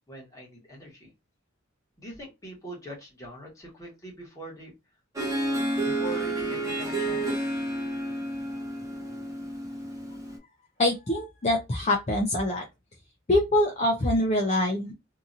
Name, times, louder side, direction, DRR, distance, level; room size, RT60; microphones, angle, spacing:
voice 1, 0.1-1.1 2.0-4.7 5.8-7.5, right 1 dB, 15° left, -3 dB, 1.4 m, -42 dB
Harp, 5.2-10.4, right 1 dB, 15° right, 0.9 m, -30 dB
voice 2, 10.8-12.6 13.3-14.9, left 1 dB, 35° left, 0 dB, 0.6 m, -24 dB
2.8 x 2.6 x 2.5 m, 0.22 s
head